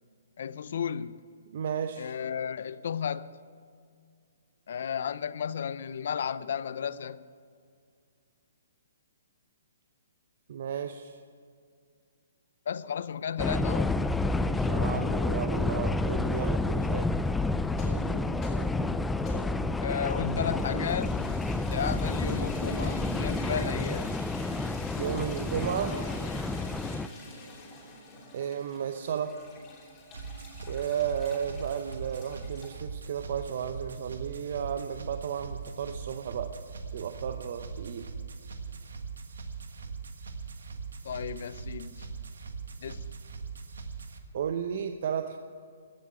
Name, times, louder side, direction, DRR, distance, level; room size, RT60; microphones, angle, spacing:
voice 1, 0.4-1.2 2.0-3.4 4.7-7.3 12.7-14.0 19.8-24.2 41.0-42.1 42.8-43.1, left 8 dB, 65° left, 0.5 m, -34 dB
voice 2, 1.5-2.2 10.5-11.2 14.3-17.1 24.9-26.0 28.3-29.4 30.7-36.6 36.9-38.1 44.3-45.4, right 8 dB, 60° right, 0.7 m, -33 dB
sound 1, 13.4-27.1, left 2 dB, 5° left, 0.4 m, -29 dB
sound 2, 17.6-32.8, left 1 dB, 20° left, 3.2 m, -44 dB
sound 3, 30.1-44.2, right 5 dB, 80° right, 1.4 m, -41 dB
15.0 x 7.3 x 8.9 m
hypercardioid pair, 145°, 0 cm